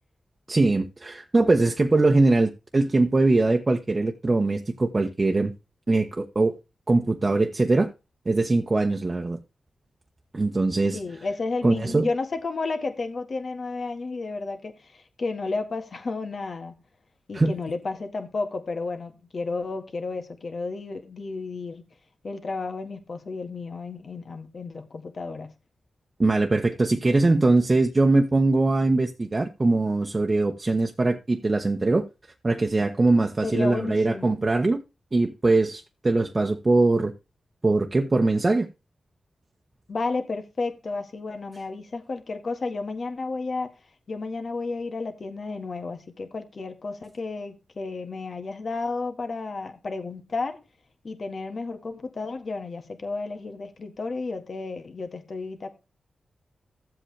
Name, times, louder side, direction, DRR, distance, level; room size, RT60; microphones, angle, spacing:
voice 1, 0.5-5.5 5.9-6.6 6.9-7.9 8.3-9.4 10.3-11.0 11.6-12.1 17.3-17.5 26.2-32.0 32.4-34.8 35.1-37.1 37.6-38.7, right 2 dB, 35° right, 1.0 m, -22 dB
voice 2, 10.9-16.7 17.3-21.8 22.2-25.5 33.4-34.4 39.9-43.8 44.1-50.6 51.0-55.7, left 3 dB, 60° left, 1.7 m, -32 dB
13.0 x 7.7 x 3.3 m
cardioid pair, 50°, 0 cm